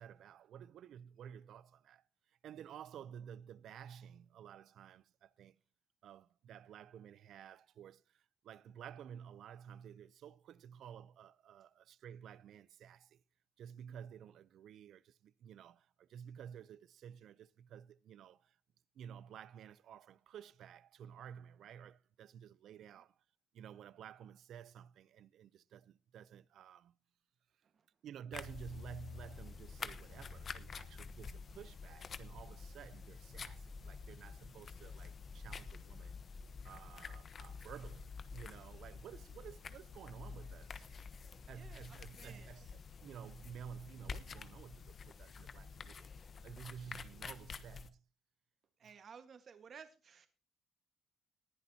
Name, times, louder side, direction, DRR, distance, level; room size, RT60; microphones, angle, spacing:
voice 1, 0.0-5.6 6.0-13.2 13.6-18.6 18.9-23.2 23.5-27.0 28.0-36.2 36.6-40.9 41.5-46.1 46.4-48.0 48.8-49.0, right 8 dB, 75° right, 0.6 m, -53 dB
sound 1, 28.3-47.9, left 5 dB, 45° left, 1.1 m, -49 dB
voice 2, 41.5-42.5 46.8-46.9 48.8-50.3, right 6 dB, 55° right, 1.6 m, -56 dB
19.5 x 10.5 x 2.9 m
cardioid pair, 90°, 0 cm